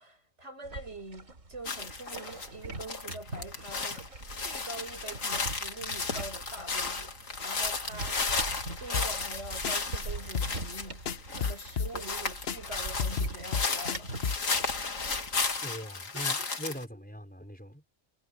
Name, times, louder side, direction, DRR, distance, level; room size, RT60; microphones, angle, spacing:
voice 1, 0.0-8.2 8.8-11.0 11.3-14.4 16.1-16.5, right 2 dB, 60° right, 5.4 m, -45 dB
sound 1, 0.6-15.6, right 2 dB, 80° right, 3.5 m, -43 dB
sound 2, 1.6-2.5 2.8-16.8, left 4 dB, 80° left, 2.6 m, -34 dB
sound 3, 8.9-9.4 9.6-9.8 10.0-10.1 10.3-10.8 11.0-12.2 12.5-12.6 12.8-14.5, left 6 dB, 50° left, 1.2 m, -31 dB
voice 2, 15.6-17.8, equal, 5° left, 4.9 m, -41 dB
omnidirectional pair, 1.3 m